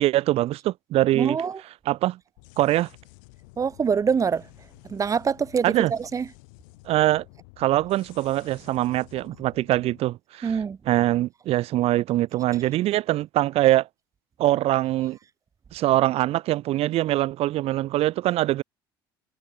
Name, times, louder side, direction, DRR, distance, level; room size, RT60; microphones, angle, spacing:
voice 1, 0.0-1.4 1.9-2.2 2.6-2.9 5.6-5.9 6.9-7.2 7.6-10.5 10.9-13.9 14.4-15.2 15.7-18.6, right 15 dB, 55° right, 1.2 m, -23 dB
voice 2, 1.1-1.6 3.6-4.4 4.9-6.3 10.4-10.8, right 6 dB, 30° right, 0.6 m, -24 dB
sound 1, 2.4-10.0, left 32 dB, 75° left, 2.5 m, -51 dB
hypercardioid pair, 65°, 12 cm